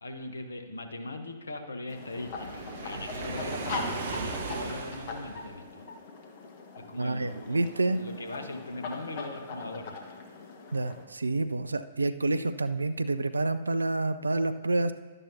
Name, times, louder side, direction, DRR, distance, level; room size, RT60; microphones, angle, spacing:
voice 1, 0.0-5.8 6.8-7.6 7.9-10.4, left 2 dB, 75° left, 7 dB, 1.1 m, -40 dB
sound 1, 1.9-11.0, left 4 dB, 45° left, 1.3 m, -41 dB
Waves surf, 2.2-5.7, right 4 dB, 55° right, 1.1 m, -37 dB
voice 2, 7.0-8.0 10.7-14.9, right 2 dB, 80° right, 13 dB, 0.4 m, -28 dB
12.0 x 11.0 x 2.8 m, 1.5 s
figure-of-eight pair, 115°, 0 cm